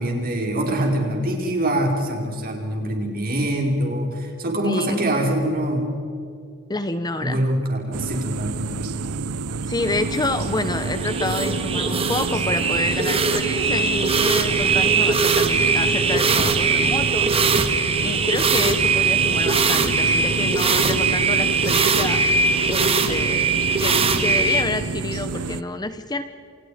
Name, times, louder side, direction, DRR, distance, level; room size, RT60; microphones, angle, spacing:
voice 1, 0.0-5.8 7.2-9.0, right 1 dB, 40° right, 1 dB, 5.1 m, -24 dB
voice 2, 4.6-5.0 6.7-7.5 9.7-17.6 18.0-22.2 22.7-26.2, left 2 dB, 20° left, 10 dB, 0.9 m, -28 dB
sound 1, 7.9-25.6, right 3 dB, 90° right, 0.9 m, -29 dB
sound 2, 9.8-24.6, right 4 dB, 25° right, 1.9 m, -21 dB
30.0 x 27.5 x 5.1 m, 2.3 s
head